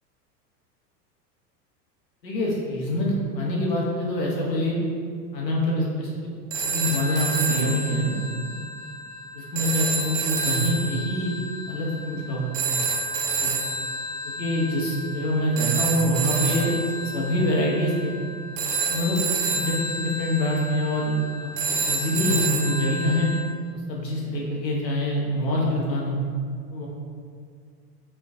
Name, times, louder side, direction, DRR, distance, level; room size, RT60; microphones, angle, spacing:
voice 1, 2.2-4.8 5.3-6.3 6.6-8.1 9.3-11.3 11.7-12.5 13.3-13.5 14.2-16.7 17.0-18.1 18.8-23.3 23.9-26.2 26.7-26.9, equal, 85° left, -4 dB, 1.0 m, -25 dB
sound 1, 6.5-23.4, right 3 dB, 55° right, 0.6 m, -29 dB
4.5 x 2.3 x 2.5 m, 2.1 s
hypercardioid pair, 95°, 49 cm